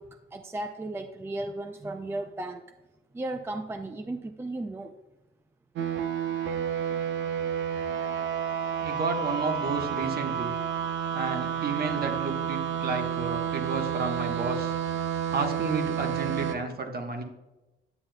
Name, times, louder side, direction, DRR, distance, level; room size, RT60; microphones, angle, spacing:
voice 1, 0.0-2.6 3.1-5.0, right 2 dB, 10° right, 7 dB, 0.4 m, -35 dB
sound 1, 5.8-16.6, right 8 dB, 70° right, 0.6 m, -30 dB
voice 2, 8.8-10.5 11.1-14.7 15.3-17.2, right 4 dB, 50° right, 4 dB, 1.2 m, -31 dB
9.6 x 7.2 x 2.2 m, 1.0 s
cardioid pair, 90°, 20 cm